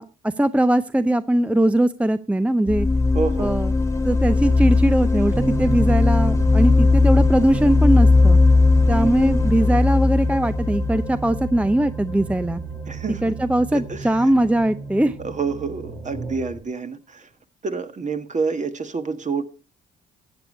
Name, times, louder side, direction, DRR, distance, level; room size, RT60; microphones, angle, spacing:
voice 1, 0.0-2.9 3.4-3.7 4.0-8.4 8.9-12.6 13.2-15.2, right 1 dB, 5° right, 13 dB, 0.6 m, -20 dB
sound 1, 2.7-12.5, left 3 dB, 15° left, 1.2 m, -18 dB
voice 2, 3.1-3.5 9.0-9.3 12.9-13.2 13.7-14.2 15.2-17.3 17.6-19.4, right 4 dB, 35° right, 9 dB, 1.6 m, -28 dB
sound 2, 5.3-16.6, right 4 dB, 85° right, 7.4 m, -32 dB
14.0 x 8.6 x 4.3 m, 0.32 s
supercardioid pair, 65°, 20 cm